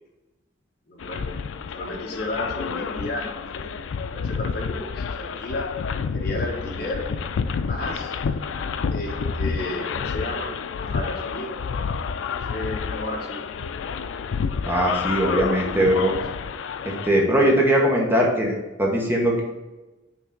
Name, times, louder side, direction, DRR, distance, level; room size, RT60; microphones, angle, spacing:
voice 1, 0.9-1.4 1.7-3.7 4.0-5.7 6.1-7.0 7.7-8.1 8.9-10.5 10.8-11.6 12.4-13.4 15.0-15.3 16.1-16.2, left 1 dB, 55° left, 0 dB, 1.3 m, -33 dB
sound 1, 1.0-17.1, left 5 dB, 85° left, 0.4 m, -29 dB
voice 2, 14.7-16.1 16.8-19.4, right 1 dB, 10° right, -2 dB, 1.1 m, -20 dB
5.7 x 3.6 x 5.1 m, 1.1 s
head